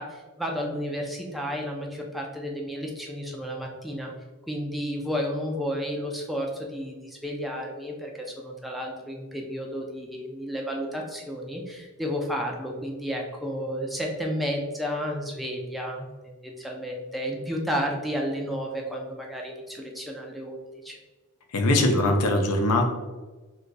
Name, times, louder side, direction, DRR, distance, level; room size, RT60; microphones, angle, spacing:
voice 1, 0.0-4.1 4.5-21.0, equal, ahead, -1 dB, 0.3 m, -32 dB
voice 2, 21.5-22.9, left 1 dB, 85° left, 3 dB, 0.5 m, -21 dB
2.6 x 2.3 x 3.8 m, 1.2 s
head